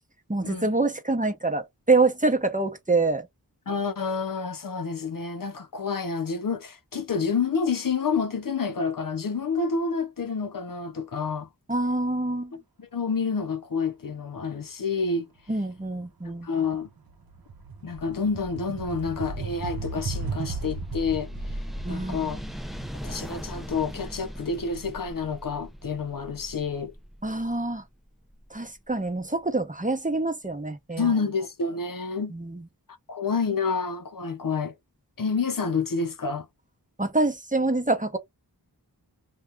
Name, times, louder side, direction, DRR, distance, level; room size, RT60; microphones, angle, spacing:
voice 1, 0.3-3.3 11.7-12.5 15.5-16.5 21.8-22.3 27.2-27.8 28.5-31.1 32.3-32.6 37.0-38.2, right 3 dB, 20° right, 0.7 m, -26 dB
voice 2, 3.7-11.5 12.5-15.3 16.4-16.9 17.8-22.4 22.9-26.9 31.0-32.3 33.1-34.7 35.2-36.5, left 5 dB, 55° left, 0.5 m, -29 dB
sound 1, 15.8-16.0 16.4-25.2, right 4 dB, 65° right, 0.7 m, -37 dB
sound 2, 19.7-29.0, equal, ahead, 0.4 m, -40 dB
2.7 x 2.3 x 3.3 m
wide cardioid pair, 45°, 39 cm